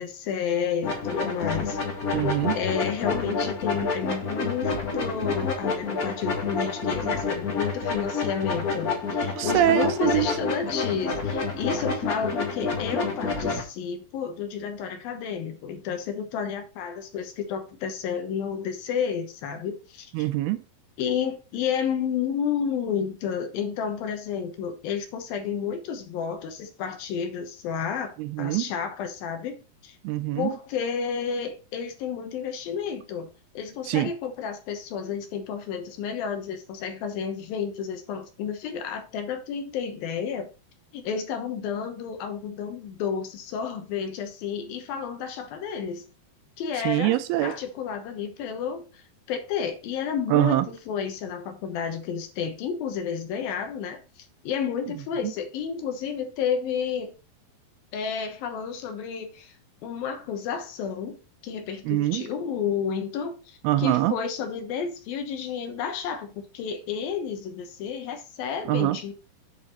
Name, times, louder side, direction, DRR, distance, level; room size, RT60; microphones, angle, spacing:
voice 1, 0.0-1.8 2.5-20.3 21.0-30.0 30.4-33.3 33.5-40.5 40.9-46.1 46.6-47.2 47.4-57.2 57.9-59.5 59.8-69.1, left 7 dB, 70° left, 2.6 m, -31 dB
sound 1, 0.8-13.6, left 4 dB, 50° left, 1.0 m, -28 dB
voice 2, 2.1-2.6 9.4-10.3 20.1-20.6 28.2-28.7 30.0-30.5 33.9-34.1 46.9-47.6 50.3-50.7 55.2-55.3 61.9-62.2 63.6-64.2 68.7-69.0, right 14 dB, 80° right, 2.5 m, -24 dB
8.5 x 4.9 x 4.3 m
omnidirectional pair, 4.7 m